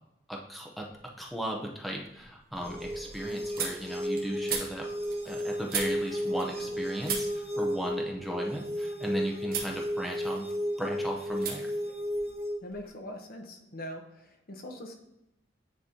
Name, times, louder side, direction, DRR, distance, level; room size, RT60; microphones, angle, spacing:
voice 1, 0.3-4.9 5.2-10.5 10.8-11.7, equal, ahead, -1 dB, 0.7 m, -36 dB
sound 1, 0.8-1.3 1.7-6.8 7.0-9.1 9.5-9.8 10.1-10.9 11.4-11.6 11.8-12.9, right 6 dB, 55° right, 1.4 m, -39 dB
sound 2, 2.6-12.6, equal, 35° right, 1.3 m, -33 dB
voice 2, 12.6-14.9, left 1 dB, 55° left, 4 dB, 0.9 m, -42 dB
9.8 x 4.0 x 2.8 m, 0.90 s
head